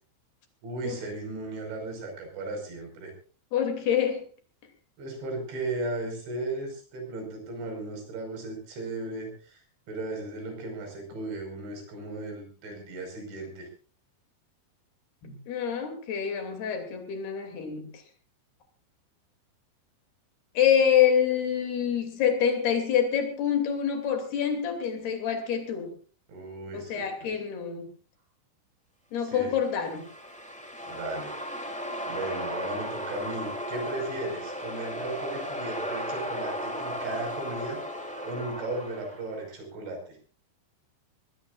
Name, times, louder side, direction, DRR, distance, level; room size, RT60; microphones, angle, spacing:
voice 1, 0.6-3.1 5.0-9.6 9.9-13.7 26.3-27.3 29.2-29.5 30.9-31.4 32.1-37.8 38.2-40.0, right 2 dB, 65° right, 4 dB, 7.5 m, -36 dB
voice 2, 3.5-4.2 15.2-18.0 20.5-25.9 26.7-27.9 29.1-30.0, left 8 dB, 55° left, 5 dB, 4.5 m, -26 dB
sound 1, 29.5-39.3, equal, 10° left, 0.4 m, -35 dB
23.0 x 20.0 x 2.5 m, 0.40 s
omnidirectional pair, 5.8 m